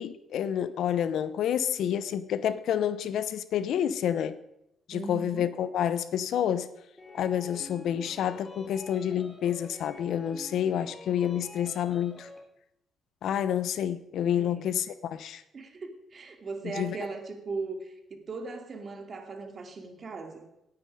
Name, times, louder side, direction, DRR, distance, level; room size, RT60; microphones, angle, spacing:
voice 1, 0.0-4.4 4.9-6.7 7.2-12.3 13.2-15.4 16.8-17.0, left 9 dB, 75° left, 14 dB, 0.8 m, -29 dB
voice 2, 4.9-5.5 14.3-14.7 15.5-20.5, right 3 dB, 45° right, 5 dB, 2.6 m, -38 dB
sound 1, 7.0-12.4, left 1 dB, 20° left, 2.2 m, -47 dB
17.5 x 9.8 x 4.9 m, 0.83 s
cardioid pair, 90°, 0 cm